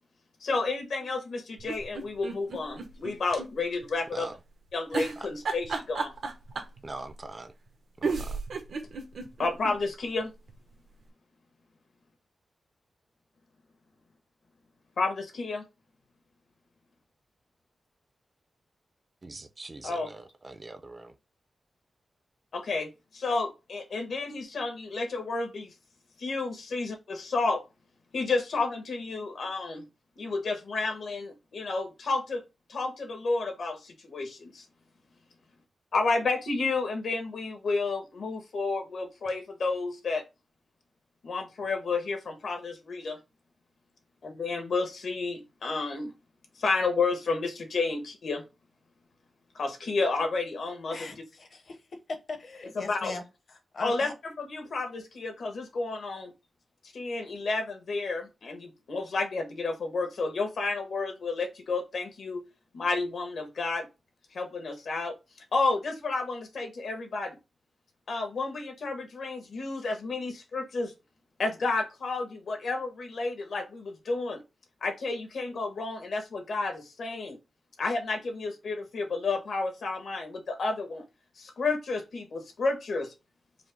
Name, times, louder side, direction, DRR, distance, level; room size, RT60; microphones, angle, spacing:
voice 1, 0.4-4.3 4.7-6.1 9.4-10.3 15.0-15.6 19.8-20.1 22.5-25.7 26.2-27.6 28.1-29.8 30.2-32.4 32.7-34.6 35.9-40.2 41.2-43.2 44.2-46.1 46.6-48.4 49.5-51.1 52.7-53.2 53.8-54.1 54.4-56.3 56.9-62.4 62.7-63.9 64.3-65.1 65.5-67.4 68.1-70.9 71.4-74.4 74.8-77.4 77.8-81.0 81.4-83.1, left 3 dB, 75° left, 1.2 m, -31 dB
sound 1, 1.6-3.5 3.8-3.9 4.9-6.8 7.7-7.8 8.0-9.8 10.2-10.3 10.5-10.6, right 4 dB, 85° right, 0.9 m, -33 dB
voice 2, 6.8-7.5 8.0-8.4 19.2-21.2, right 2 dB, 25° right, 0.4 m, -43 dB
voice 3, 50.9-53.2 53.5-54.1, left 3 dB, 50° left, 0.8 m, -40 dB
4.9 x 2.1 x 3.9 m
wide cardioid pair, 180°, 0 cm